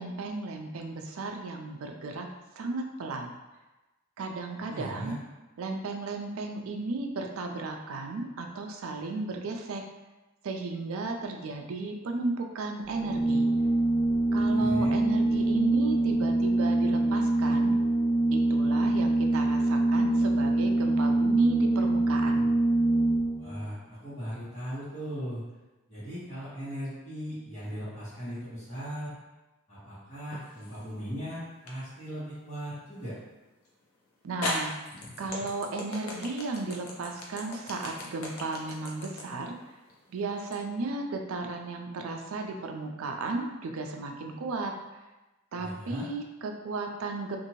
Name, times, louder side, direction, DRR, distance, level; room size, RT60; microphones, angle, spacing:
voice 1, 0.0-2.3 2.6-3.3 4.2-5.1 5.6-9.8 10.4-13.5 14.3-17.8 18.3-22.5 34.2-34.7 35.2-39.6 40.1-44.7 45.5-47.4, right 3 dB, 75° right, 4 dB, 0.4 m, -34 dB
voice 2, 4.7-5.1 14.5-15.0 23.4-25.4 25.9-29.1 29.7-33.1 45.6-46.1, equal, 35° left, -14 dB, 1.3 m, -38 dB
Organ, 12.9-23.6, right 2 dB, 20° right, 0.8 m, -24 dB
sound 1, 30.3-30.9 31.7-31.8 33.7-33.8 34.4-40.6, left 2 dB, 85° left, 0.6 m, -37 dB
2.7 x 2.5 x 2.9 m, 1.1 s
head